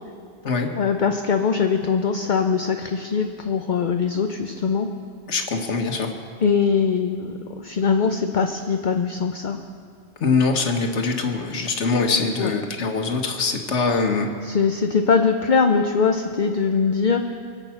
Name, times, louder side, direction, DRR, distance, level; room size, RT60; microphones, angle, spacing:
voice 1, 0.8-4.9 6.4-9.6 12.4-12.5 14.4-17.3, left 5 dB, 50° left, 5 dB, 0.7 m, -22 dB
voice 2, 5.3-6.1 10.2-14.3, left 4 dB, 90° left, 4 dB, 1.6 m, -23 dB
24.0 x 8.2 x 5.8 m, 2.3 s
omnidirectional pair, 1.2 m